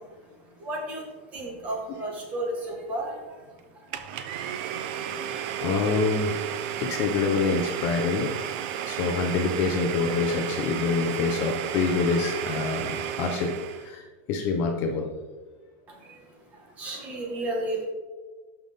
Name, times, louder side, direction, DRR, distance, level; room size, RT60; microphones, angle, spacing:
voice 1, 0.0-4.2 15.9-17.9, right 1 dB, 20° right, 0 dB, 1.6 m, -34 dB
Domestic sounds home sounds, 3.9-13.9, right 9 dB, 45° right, 0.6 m, -32 dB
voice 2, 4.1-4.8 5.1-6.4 6.8-8.6 8.9-13.5 13.8-15.1, left 4 dB, 30° left, 2 dB, 0.8 m, -27 dB
11.5 x 5.8 x 3.6 m, 1.3 s
supercardioid pair, 180°, 7 cm